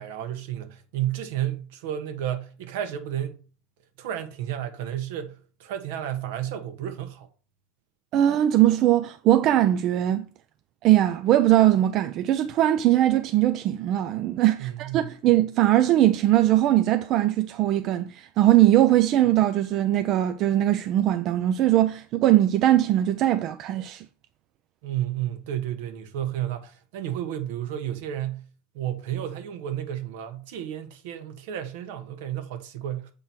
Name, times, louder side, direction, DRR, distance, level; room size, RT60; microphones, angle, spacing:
voice 1, 0.0-3.4 4.0-7.3 14.6-15.1 24.8-28.4 28.7-33.1, right 11 dB, 75° right, 1.2 m, -32 dB
voice 2, 8.1-10.3 10.8-24.0, right 13 dB, 50° right, 0.5 m, -21 dB
7.4 x 3.9 x 4.4 m
supercardioid pair, 110°, 0 cm